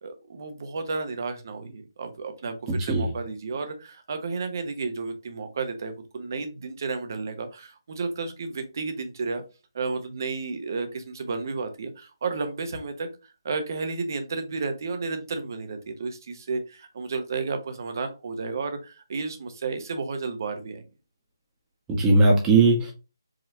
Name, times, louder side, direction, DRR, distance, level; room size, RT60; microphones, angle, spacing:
voice 1, 0.0-9.4 9.7-20.8, right 4 dB, 50° right, 7 dB, 1.0 m, -32 dB
voice 2, 2.7-3.1 21.9-22.9, right 3 dB, 15° right, 0 dB, 1.2 m, -19 dB
4.9 x 3.0 x 2.9 m, 0.29 s
figure-of-eight pair, 155°, 2 cm